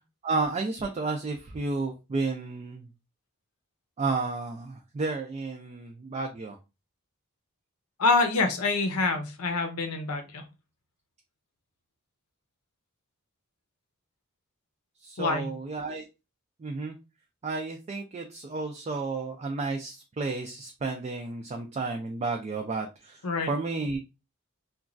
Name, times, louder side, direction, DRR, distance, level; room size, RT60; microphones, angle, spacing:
voice 1, 0.2-2.9 4.0-6.6 15.0-16.0 16.6-17.0 17.4-23.2 23.5-24.0, right 3 dB, 30° right, 3 dB, 0.3 m, -32 dB
voice 2, 8.0-10.4 15.2-15.5 23.2-23.5, left 3 dB, 85° left, 6 dB, 0.7 m, -26 dB
3.0 x 2.3 x 2.4 m, 0.27 s
head